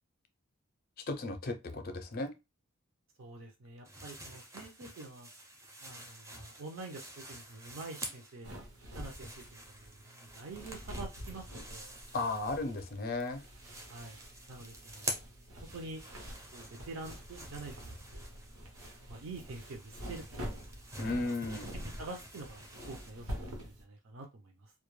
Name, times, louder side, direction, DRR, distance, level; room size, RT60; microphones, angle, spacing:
voice 1, 1.1-2.3 12.1-13.4 21.0-21.7, left 2 dB, 45° left, 0.4 m, -35 dB
voice 2, 3.2-5.3 5.8-8.5 8.9-11.9 13.9-14.2 14.5-15.2 15.7-16.0 16.5-18.4 19.1-20.5 21.8-24.7, right 3 dB, 70° right, 0.5 m, -47 dB
sound 1, 3.8-8.4 8.7-12.9 13.2-23.1, right 1 dB, 15° right, 0.4 m, -48 dB
sound 2, 8.4-23.8, equal, 90° right, 0.8 m, -47 dB
2.2 x 2.1 x 3.0 m
head